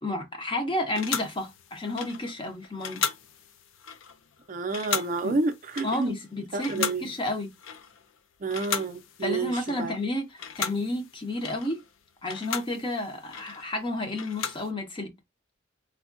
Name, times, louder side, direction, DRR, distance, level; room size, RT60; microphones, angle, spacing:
voice 1, 0.0-3.0 5.2-5.4 5.8-7.5 9.2-11.8 12.2-15.1, left 1 dB, 25° left, 0.6 m, -31 dB
sound 1, 1.0-8.2 8.5-10.1 10.3-14.7, left 7 dB, 85° left, 0.4 m, -36 dB
voice 2, 4.5-6.1 6.5-7.0 8.4-9.5 9.8-9.9, right 3 dB, 40° right, 0.4 m, -29 dB
3.4 x 2.2 x 2.4 m
head